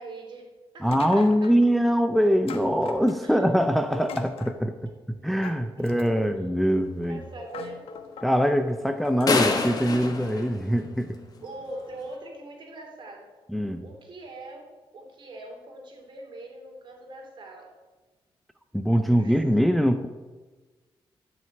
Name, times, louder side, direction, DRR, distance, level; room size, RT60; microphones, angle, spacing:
voice 1, 0.0-1.3 3.2-3.4 5.8-5.9 7.0-7.8 11.4-13.3 13.8-17.7 19.1-19.5, right 2 dB, 55° right, 1 dB, 3.1 m, -42 dB
voice 2, 0.8-7.3 8.2-11.2 13.5-13.8 18.7-20.1, equal, ahead, 8 dB, 0.6 m, -23 dB
sound 1, 0.9-1.7 2.5-3.4 3.9-4.6 5.4-6.4 7.0-7.1 7.5-8.4 9.0-9.7, left 6 dB, 85° left, 1.2 m, -41 dB
sound 2, 9.3-11.4, left 4 dB, 40° left, 1.5 m, -26 dB
13.0 x 5.9 x 8.9 m, 1.3 s
wide cardioid pair, 130°, 10 cm